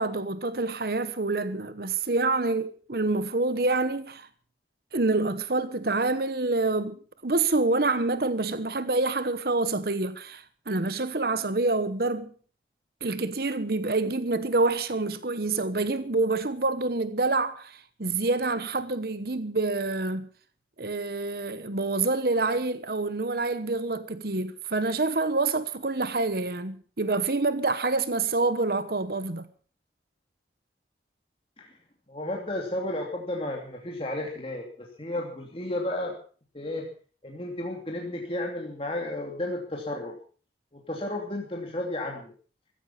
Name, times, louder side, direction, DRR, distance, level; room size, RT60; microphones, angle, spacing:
voice 1, 0.0-4.3 4.9-12.3 13.0-20.3 20.8-29.5, right 3 dB, 55° right, 1.1 m, -27 dB
voice 2, 32.1-36.1 36.5-36.9 37.2-40.2 40.7-42.3, left 1 dB, 30° left, 2.8 m, -33 dB
15.0 x 15.0 x 5.7 m
head